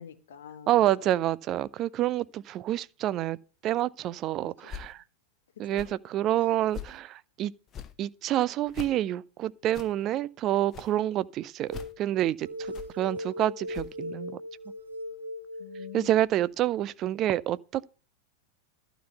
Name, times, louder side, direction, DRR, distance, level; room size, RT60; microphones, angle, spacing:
voice 1, 0.0-1.1 4.4-4.5 5.7-5.9 6.3-6.6 15.6-16.1 16.7-16.9, left 9 dB, 60° left, 1.1 m, -46 dB
voice 2, 0.7-3.4 3.6-5.0 5.6-7.5 8.0-12.5 12.9-14.4 15.9-17.9, right 13 dB, 35° right, 0.4 m, -28 dB
sound 1, 4.7-4.9 5.7-5.9 6.7-7.0 7.7-7.9 8.7-8.9 9.7-9.9 10.7-10.9 11.7-11.9 12.7-12.9 13.7-13.9, left 9 dB, 25° left, 0.9 m, -42 dB
sound 2, 11.7-12.0 12.4-16.2, left 1 dB, 75° right, 1.0 m, -39 dB
12.0 x 4.0 x 8.0 m
figure-of-eight pair, 90°, 0 cm